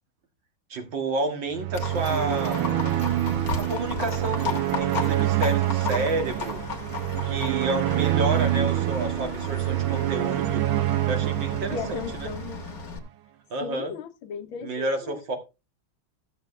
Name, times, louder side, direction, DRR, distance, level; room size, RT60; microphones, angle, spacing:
voice 1, 0.7-2.7 3.5-6.6 7.2-10.6 11.1-12.3 13.5-13.9 14.6-15.4, right 2 dB, 65° right, 2.6 m, -30 dB
sound 1, 1.5-12.9, right 14 dB, 85° right, 1.5 m, -26 dB
Livestock farm animals working animals, 1.7-13.0, left 6 dB, 50° left, 1.7 m, -35 dB
voice 2, 11.7-12.6 13.6-15.2, left 6 dB, 80° left, 1.7 m, -36 dB
14.5 x 6.8 x 3.2 m
omnidirectional pair, 2.2 m